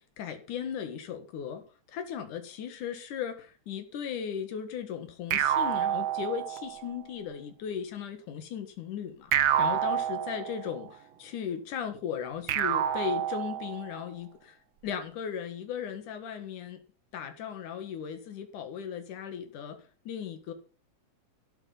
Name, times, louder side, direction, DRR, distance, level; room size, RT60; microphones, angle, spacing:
voice 1, 0.2-1.6 1.9-9.3 9.6-14.6 14.8-16.8 17.1-20.5, left 8 dB, 90° left, 3.3 m, -37 dB
sound 1, 5.3-6.9 9.3-10.9 12.5-14.0, right 10 dB, 70° right, 1.1 m, -28 dB
13.0 x 11.5 x 5.7 m
omnidirectional pair, 3.4 m